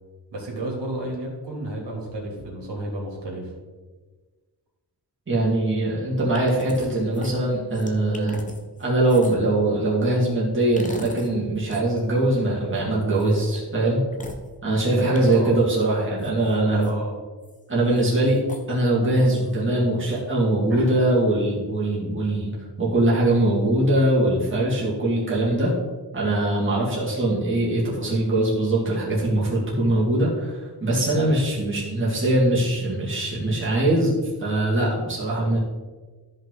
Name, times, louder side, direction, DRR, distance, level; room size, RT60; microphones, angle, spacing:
voice 1, 0.3-3.5 6.1-6.2 14.9-15.5 16.6-17.2 20.7-20.9, right 1 dB, 85° right, -3 dB, 3.0 m, -31 dB
voice 2, 5.3-8.4 8.8-14.0 14.6-16.8 17.7-18.4 18.7-25.7 26.1-34.1 34.4-35.6, right 1 dB, 30° right, -6 dB, 2.5 m, -22 dB
sound 1, 6.3-6.9 7.1-9.5 10.8-11.3 11.6-11.8 13.2-13.6 14.1-14.4 15.1-15.6 16.2-16.9 17.4-17.6 17.9-18.7 19.2-19.6, left 1 dB, 20° left, 0.9 m, -40 dB
13.5 x 5.4 x 4.0 m, 1.4 s
wide cardioid pair, 165°, 41 cm